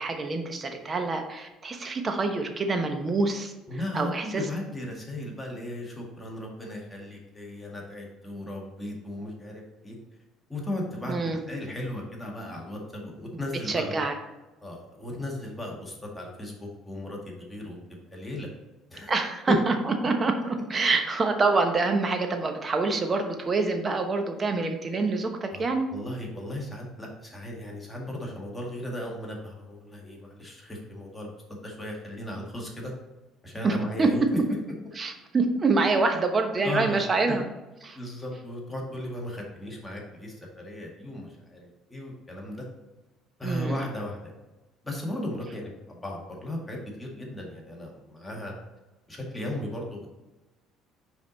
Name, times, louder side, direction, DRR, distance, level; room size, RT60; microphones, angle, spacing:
voice 1, 0.0-3.5 3.9-4.5 11.1-11.4 13.7-14.1 19.1-25.9 33.6-34.3 35.0-37.4 37.8-38.0 43.4-43.8, right 3 dB, 30° right, 5 dB, 1.0 m, -26 dB
voice 2, 3.7-10.0 10.5-14.0 14.6-18.5 18.9-19.1 19.5-19.6 25.5-25.6 25.9-32.9 33.4-34.2 36.1-36.2 36.6-37.4 37.9-42.7 43.4-44.3 44.8-48.5 49.1-50.1, left 1 dB, 10° left, -2 dB, 1.7 m, -36 dB
5.5 x 4.7 x 4.0 m, 1.1 s
cardioid pair, 100°, 0 cm